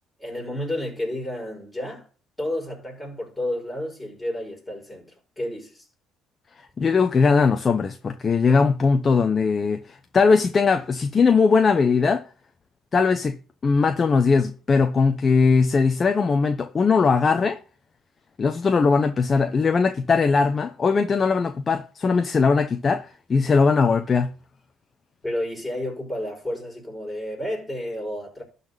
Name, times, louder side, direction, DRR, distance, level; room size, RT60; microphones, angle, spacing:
voice 1, 0.2-2.1 2.4-5.9 25.2-28.4, left 1 dB, 5° left, 5.8 m, -31 dB
voice 2, 6.8-12.2 12.9-17.6 18.4-24.3, left 4 dB, 30° left, 0.8 m, -20 dB
12.0 x 4.2 x 6.8 m
cardioid pair, 105°, 0 cm